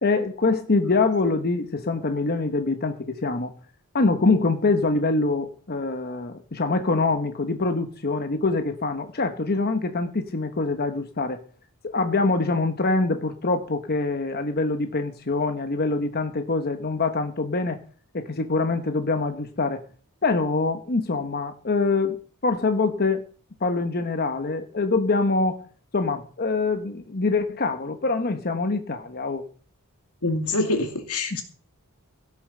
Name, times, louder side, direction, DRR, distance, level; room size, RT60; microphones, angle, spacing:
voice 1, 0.0-3.5 3.9-11.4 11.8-17.8 18.1-19.8 20.2-23.2 23.6-25.6 25.9-29.4 31.3-31.4, left 3 dB, 45° left, 7 dB, 1.1 m, -24 dB
voice 2, 30.2-31.4, left 2 dB, 80° left, 6 dB, 2.6 m, -25 dB
16.5 x 7.1 x 6.5 m, 0.43 s
head